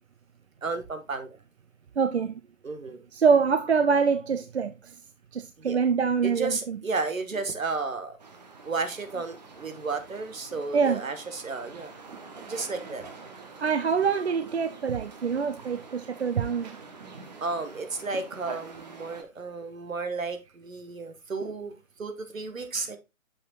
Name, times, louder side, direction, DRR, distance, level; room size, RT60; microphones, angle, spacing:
voice 1, 0.6-1.4 2.6-3.1 5.6-5.8 6.2-8.2 8.6-11.9 12.5-13.0 17.4-23.0, right 4 dB, 70° right, 1.5 m, -33 dB
voice 2, 2.0-2.4 3.1-4.7 5.3-6.8 10.7-11.0 13.6-16.8 22.7-22.8, right 6 dB, 50° right, 0.5 m, -25 dB
sound 1, 8.2-19.2, right 4 dB, 30° right, 1.0 m, -46 dB
7.1 x 6.5 x 2.3 m
figure-of-eight pair, 140°, 41 cm